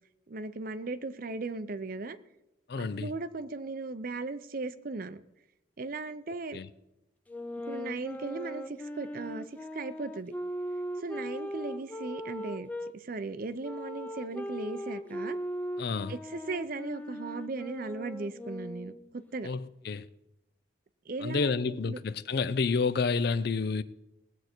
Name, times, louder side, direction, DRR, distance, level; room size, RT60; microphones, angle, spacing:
voice 1, 0.3-2.2 2.8-5.2 5.8-6.6 7.7-10.3 11.0-15.4 16.1-19.5 21.1-22.0, right 3 dB, 50° right, 0.6 m, -37 dB
voice 2, 2.7-3.1 6.5-6.7 15.8-16.1 19.4-20.1 21.2-23.8, left 4 dB, 60° left, 0.5 m, -29 dB
sound 1, 7.3-12.9 13.6-19.1, equal, 10° left, 0.5 m, -39 dB
19.0 x 8.0 x 4.4 m
head